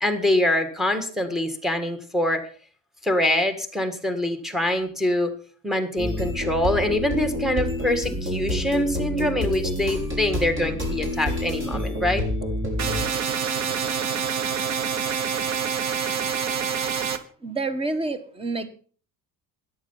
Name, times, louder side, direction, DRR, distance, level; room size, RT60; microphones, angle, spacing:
voice 1, 0.0-2.5 3.0-5.3 5.6-12.2, left 1 dB, ahead, 8 dB, 1.8 m, -24 dB
sound 1, 6.0-13.0, left 1 dB, 35° right, 6.4 m, -28 dB
sound 2, 12.8-17.2, right 7 dB, 50° right, 1.3 m, -26 dB
voice 2, 17.4-18.7, right 3 dB, 15° right, 12 dB, 1.4 m, -28 dB
14.0 x 10.5 x 5.6 m, 0.43 s
cardioid pair, 140°, 34 cm